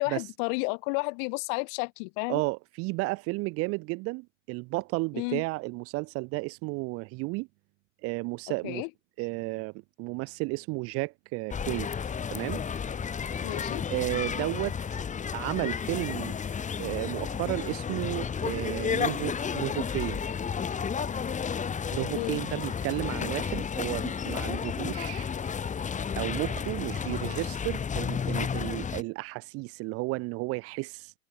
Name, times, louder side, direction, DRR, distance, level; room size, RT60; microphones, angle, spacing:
voice 1, 0.0-2.4 5.1-5.5 8.5-8.9 13.4-13.9 22.1-22.4, left 40 dB or more, 50° left, 4.5 m, -32 dB
voice 2, 2.3-7.5 8.0-8.8 9.2-9.7 10.0-11.9 12.3-12.6 13.9-14.8 15.3-16.3 16.8-20.3 21.9-25.3 26.1-31.1, right 25 dB, 35° right, 0.6 m, -33 dB
sound 1, 11.5-29.0, left 6 dB, 20° left, 2.3 m, -32 dB
hypercardioid pair, 110°, 40 cm